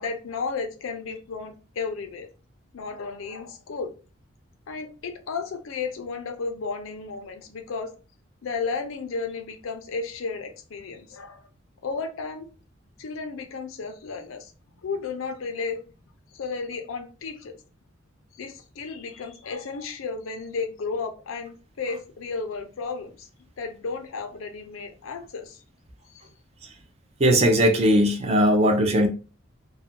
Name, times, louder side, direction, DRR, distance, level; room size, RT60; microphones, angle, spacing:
voice 1, 0.0-2.3 2.7-3.9 4.7-7.9 8.4-11.4 11.8-12.5 13.0-14.5 14.8-15.8 16.3-17.6 18.4-23.3 23.6-25.6 26.1-26.2, left 4 dB, 90° left, 0.5 m, -33 dB
voice 2, 27.2-29.1, equal, 30° right, 0.4 m, -19 dB
2.3 x 2.1 x 2.7 m
head